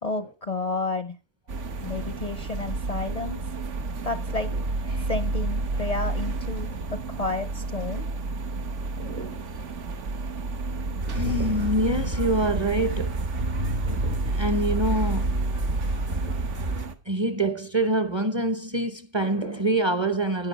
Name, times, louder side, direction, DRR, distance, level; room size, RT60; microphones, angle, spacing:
voice 1, 0.0-1.2 1.8-3.4 4.0-4.5 5.0-8.0, left 3 dB, 45° left, 0.6 m, -31 dB
sound 1, 1.5-16.9, right 2 dB, 80° right, 1.3 m, -30 dB
voice 2, 9.0-9.4 11.1-13.1 13.8-15.3 16.1-16.4 17.1-20.5, right 1 dB, 25° right, 0.7 m, -26 dB
sound 2, 11.0-16.9, right 2 dB, 55° right, 1.3 m, -31 dB
10.5 x 9.6 x 4.1 m
omnidirectional pair, 1.2 m